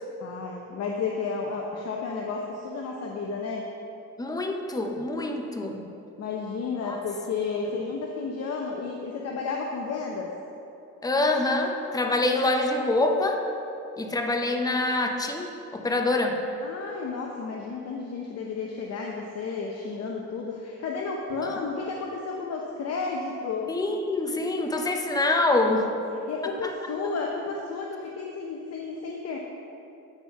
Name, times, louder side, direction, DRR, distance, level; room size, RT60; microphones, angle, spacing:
voice 1, 0.2-3.6 6.2-10.3 16.6-23.7 26.3-29.4, left 4 dB, 55° left, 0 dB, 0.8 m, -32 dB
voice 2, 4.2-5.9 6.8-7.0 11.0-13.4 14.0-16.4 21.4-21.6 23.7-25.9 26.6-26.7, left 2 dB, 10° left, 3 dB, 0.8 m, -25 dB
9.1 x 4.4 x 5.7 m, 2.8 s
cardioid pair, 90°, 30 cm